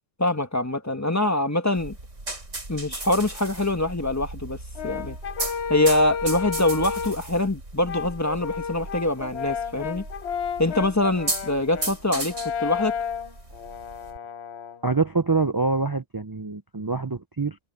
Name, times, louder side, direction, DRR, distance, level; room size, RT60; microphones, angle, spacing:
voice 1, 0.2-1.9 2.7-4.6 4.8-5.2 5.7-10.0 10.6-13.0, left 1 dB, 15° left, 1.2 m, -24 dB
sound 1, 1.8-14.2, right 2 dB, 90° right, 5.3 m, -36 dB
Brass instrument, 4.7-7.3 7.8-14.8, left 7 dB, 65° left, 1.1 m, -32 dB
voice 2, 14.8-17.6, right 4 dB, 35° right, 0.3 m, -25 dB
omnidirectional pair, 1.2 m